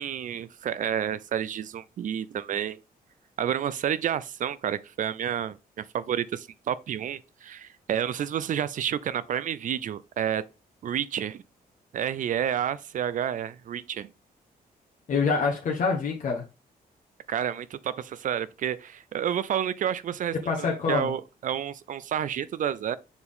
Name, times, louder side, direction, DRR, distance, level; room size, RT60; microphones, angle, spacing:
voice 1, 0.0-2.8 3.4-10.4 10.8-11.4 11.9-14.1 17.3-23.0, right 9 dB, 55° right, 0.5 m, -30 dB
voice 2, 15.1-16.4 20.4-21.1, left 4 dB, 55° left, 1.3 m, -26 dB
7.0 x 4.3 x 3.6 m
cardioid pair, 120°, 16 cm